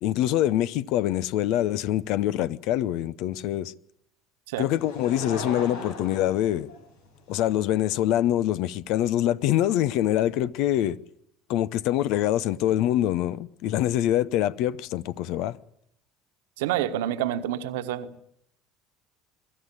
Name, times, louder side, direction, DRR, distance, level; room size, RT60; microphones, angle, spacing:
voice 1, 0.0-3.7 4.6-6.7 7.3-11.0 11.5-15.6, left 12 dB, 65° left, 0.8 m, -25 dB
Laughter / Crowd, 4.7-7.3 8.0-8.1, left 3 dB, 80° left, 5.7 m, -37 dB
voice 2, 16.6-18.1, right 12 dB, 75° right, 1.3 m, -28 dB
23.0 x 13.5 x 9.8 m
hypercardioid pair, 65°, 0 cm